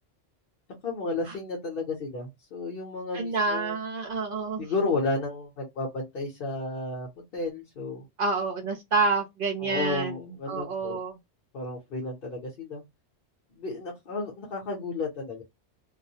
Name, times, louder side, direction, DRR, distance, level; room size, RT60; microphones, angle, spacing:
voice 1, 0.8-3.8 4.6-8.1 9.6-11.0 11.5-12.8 13.5-15.4, left 3 dB, 55° left, 0.8 m, -32 dB
voice 2, 3.1-4.7 8.2-10.2 10.5-11.1, right 4 dB, 55° right, 0.7 m, -28 dB
2.3 x 2.0 x 2.6 m
omnidirectional pair, 1.3 m